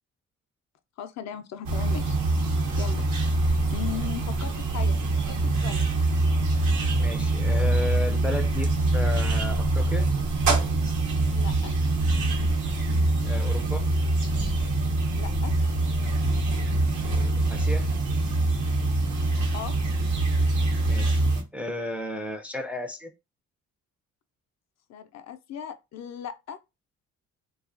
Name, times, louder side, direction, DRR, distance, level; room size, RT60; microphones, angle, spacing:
voice 1, 1.0-2.1 2.8-3.1 3.7-5.0 5.2-5.9 11.3-11.7 15.1-15.5 19.5-19.7 24.9-26.6, left 9 dB, 60° left, 0.4 m, -37 dB
sound 1, 1.7-21.4, right 2 dB, 80° right, 0.7 m, -24 dB
voice 2, 7.0-10.1 13.2-13.9 17.0-17.9 20.9-21.2 21.5-23.1, left 1 dB, 5° right, 0.3 m, -34 dB
2.6 x 2.3 x 2.4 m
cardioid pair, 90°, 30 cm